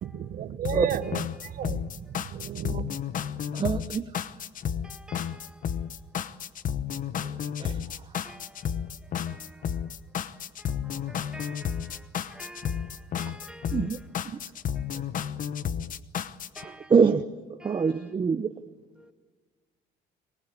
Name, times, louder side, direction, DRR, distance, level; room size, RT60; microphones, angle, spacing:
voice 1, 0.0-1.2 1.6-1.8 2.3-3.0, right 10 dB, 60° right, 12 dB, 1.3 m, -33 dB
sound 1, 0.6-16.6, left 8 dB, 50° left, 1.0 m, -32 dB
voice 2, 1.0-1.5 4.8-5.7 6.2-6.4 8.2-8.8 9.3-9.9 10.6-14.1 14.7-14.9 16.6-16.9 17.6-18.1 19.0-19.1, right 1 dB, 5° right, 7 dB, 1.8 m, -49 dB
voice 3, 3.5-4.0 7.6-7.8 13.7-14.0 14.4-14.5 16.6-17.2 17.6-18.5, right 5 dB, 30° right, 8 dB, 0.9 m, -24 dB
24.0 x 19.5 x 8.5 m, 1.4 s
cardioid pair, 110°, 17 cm